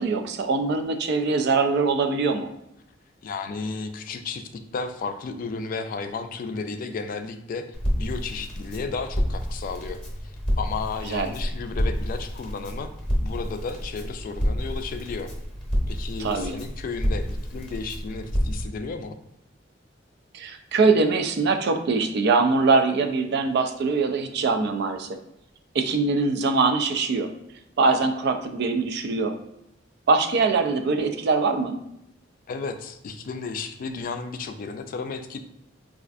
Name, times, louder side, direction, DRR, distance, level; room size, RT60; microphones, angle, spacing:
voice 1, 0.0-2.5 11.1-11.3 16.2-16.5 20.3-25.1 25.7-27.3 27.8-29.4 30.1-31.8, right 4 dB, 60° right, 6 dB, 0.4 m, -22 dB
voice 2, 3.2-10.0 10.6-12.9 13.2-15.3 15.9-19.2 32.5-35.4, left 4 dB, 45° left, 7 dB, 0.3 m, -33 dB
Crackle, 7.7-18.6, equal, 5° left, 0.8 m, -29 dB
4.2 x 2.4 x 2.4 m, 0.83 s
head